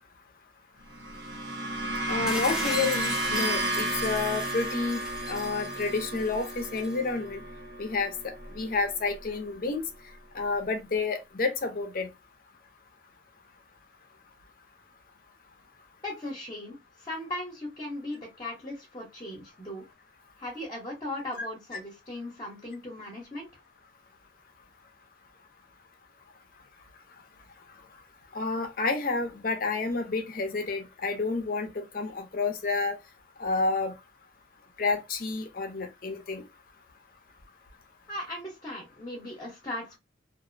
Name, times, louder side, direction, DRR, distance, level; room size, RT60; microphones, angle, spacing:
sound 1, 0.9-9.3, right 1 dB, 70° right, 0.8 m, -33 dB
voice 1, 2.1-5.0 5.3-7.4 7.8-9.8 10.3-12.1 28.3-33.0 33.4-33.9 34.8-36.4, left 3 dB, 50° left, 0.6 m, -30 dB
sound 2, 2.3-7.0, equal, 5° right, 0.4 m, -38 dB
voice 2, 16.0-19.8 20.4-23.5 38.1-40.0, left 1 dB, 25° left, 0.9 m, -38 dB
2.6 x 2.0 x 2.5 m
head